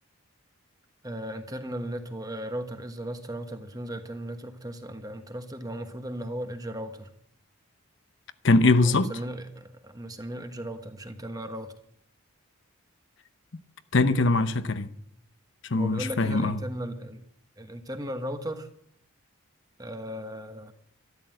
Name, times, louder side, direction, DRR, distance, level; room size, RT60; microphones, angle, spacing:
voice 1, 1.0-7.1 8.8-11.7 15.7-17.2 17.6-18.7 19.8-20.7, right 1 dB, 15° right, 1.3 m, -36 dB
voice 2, 8.4-9.1 13.9-14.9 15.6-16.5, left 3 dB, 55° left, 0.9 m, -22 dB
13.0 x 13.0 x 7.8 m
head